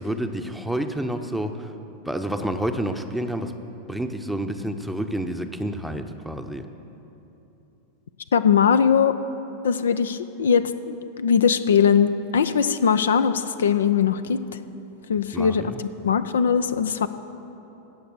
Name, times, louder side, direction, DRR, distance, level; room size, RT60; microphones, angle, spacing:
voice 1, 0.0-1.7 2.1-3.5 3.9-6.6 15.3-15.8, right 1 dB, ahead, 6 dB, 0.7 m, -29 dB
voice 2, 8.3-9.2 9.6-14.4 15.1-17.1, left 7 dB, 65° left, 12 dB, 0.4 m, -21 dB
16.5 x 6.7 x 7.9 m, 3.0 s
figure-of-eight pair, 90°, 0 cm